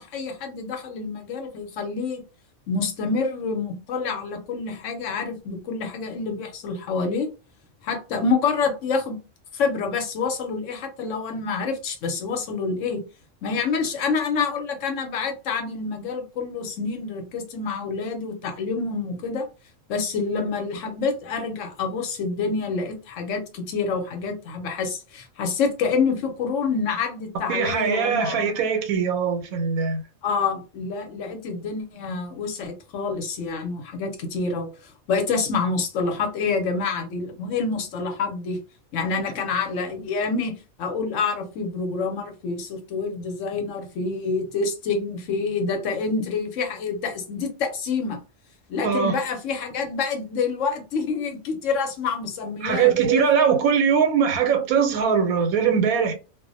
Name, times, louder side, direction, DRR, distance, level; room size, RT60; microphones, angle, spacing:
voice 1, 0.0-2.2 2.7-7.3 7.8-9.2 9.5-13.0 13.4-19.4 19.9-28.5 30.2-38.6 38.9-48.2 48.7-52.9, left 4 dB, 70° left, 0.9 m, -27 dB
voice 2, 27.5-30.0 39.1-39.3 48.8-49.2 52.6-56.1, right 6 dB, 90° right, 1.1 m, -21 dB
2.4 x 2.0 x 2.5 m
omnidirectional pair, 1.4 m